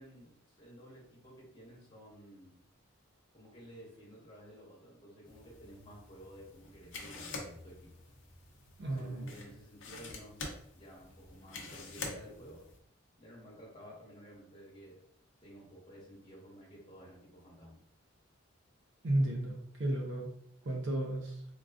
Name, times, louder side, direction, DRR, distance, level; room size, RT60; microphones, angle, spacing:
voice 1, 0.0-2.6 3.3-7.9 8.8-10.4 10.7-12.6 13.2-15.0 15.4-17.8, equal, 25° left, -5 dB, 1.2 m, -53 dB
sound 1, 5.3-12.8, left 3 dB, 60° left, 0.6 m, -47 dB
voice 2, 8.8-9.3 19.0-20.3 20.6-21.4, right 1 dB, 60° right, 0 dB, 0.5 m, -33 dB
3.7 x 2.3 x 2.4 m, 0.70 s
head